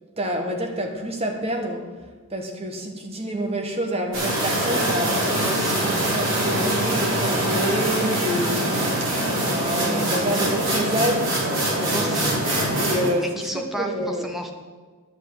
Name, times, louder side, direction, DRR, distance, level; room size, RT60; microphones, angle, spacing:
voice 1, 0.2-1.9 2.3-5.4 5.8-11.4 11.7-12.4 12.8-14.3, right 1 dB, 25° right, 3 dB, 1.3 m, -28 dB
sound 1, 4.1-13.1, right 1 dB, 55° right, 3.9 m, -23 dB
voice 2, 5.4-5.9 11.9-12.3 13.2-14.5, equal, ahead, 3 dB, 0.9 m, -32 dB
11.0 x 5.5 x 8.2 m, 1.4 s
head